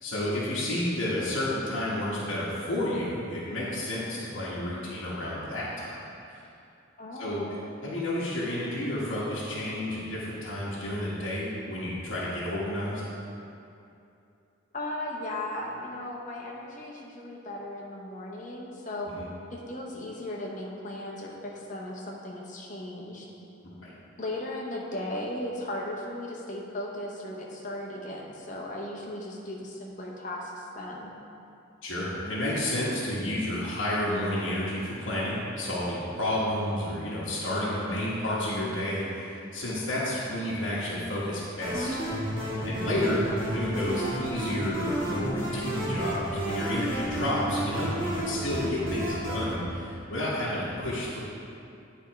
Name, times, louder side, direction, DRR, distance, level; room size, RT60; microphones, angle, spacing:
voice 1, 0.0-6.0 7.2-7.4 7.8-13.0 19.2-19.3 23.8-23.9 31.8-42.0 42.6-43.3 43.5-51.2, left 1 dB, 75° left, -8 dB, 1.2 m, -31 dB
voice 2, 7.0-7.6 14.7-19.1 19.5-23.2 24.2-31.1 43.0-43.6, left 1 dB, 40° left, -2 dB, 0.9 m, -37 dB
sound 1, 41.6-49.6, right 1 dB, 25° right, 1.4 m, -31 dB
9.4 x 3.6 x 4.6 m, 2.6 s
head